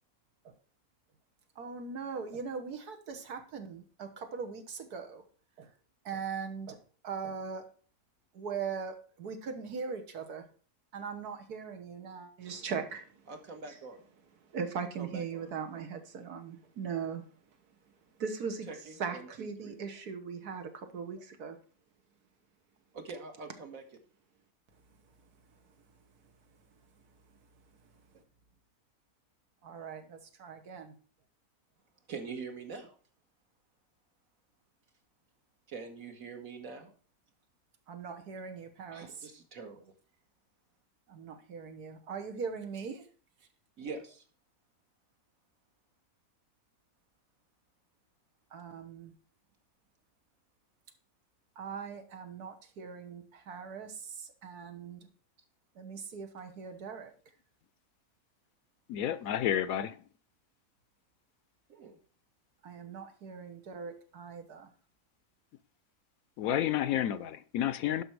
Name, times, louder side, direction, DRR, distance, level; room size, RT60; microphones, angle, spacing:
voice 1, 1.6-5.2 5.6-5.7 6.1-6.8 7.0-7.6 8.3-10.4 10.9-13.3 14.4-17.3 18.2-21.6 29.6-31.0 37.9-39.3 41.1-43.1 48.5-49.1 51.6-55.1 55.8-57.1 62.6-64.7, right 6 dB, 80° right, 1.7 m, -40 dB
voice 2, 13.3-14.0 15.0-15.5 18.7-19.8 22.9-23.8 32.1-33.0 35.7-36.9 38.9-39.9 43.8-44.2 61.7-62.0, right 4 dB, 65° right, 1.9 m, -44 dB
voice 3, 58.9-60.0 66.4-68.0, left 11 dB, 75° left, 1.0 m, -30 dB
11.5 x 5.6 x 4.6 m
omnidirectional pair, 1.6 m